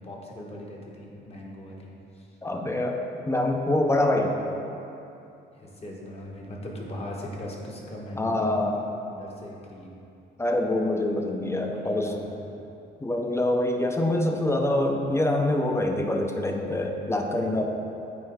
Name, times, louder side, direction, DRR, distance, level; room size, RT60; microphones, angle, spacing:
voice 1, 0.0-2.4 5.5-10.0 11.6-12.3, left 1 dB, 30° left, -2 dB, 1.3 m, -39 dB
voice 2, 2.4-3.0 3.3-4.4 8.2-8.8 10.4-12.1 13.0-17.6, left 1 dB, 15° left, 3 dB, 0.7 m, -25 dB
9.3 x 4.2 x 3.7 m, 2.7 s
cardioid pair, 90°, 20 cm